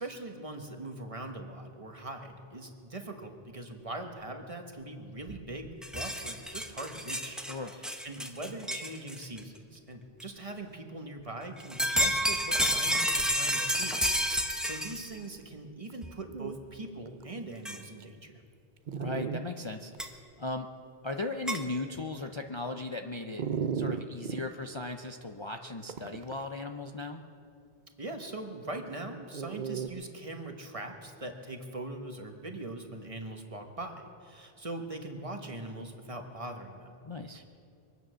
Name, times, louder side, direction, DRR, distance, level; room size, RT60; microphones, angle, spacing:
voice 1, 0.0-18.4 28.0-36.9 37.3-37.4, right 2 dB, 35° right, 4 dB, 1.3 m, -41 dB
sound 1, 5.3-5.4 5.7-9.4 10.2-10.3 11.6-15.2 16.0-16.1 17.7-17.8 20.0-20.1 21.5-21.6, equal, ahead, 0.9 m, -30 dB
Dog, 15.9-16.0 16.3-16.6 17.2-17.3 18.0-18.1 18.9-19.4 19.9-20.0 23.4-24.4 25.9-26.4 29.3-29.9, right 7 dB, 55° right, 0.7 m, -34 dB
voice 2, 19.0-19.9 20.4-20.7 21.0-23.4 23.7-27.2 37.0-37.4, left 2 dB, 35° left, 4 dB, 0.6 m, -37 dB
23.5 x 9.3 x 6.3 m, 2.5 s
omnidirectional pair, 1.0 m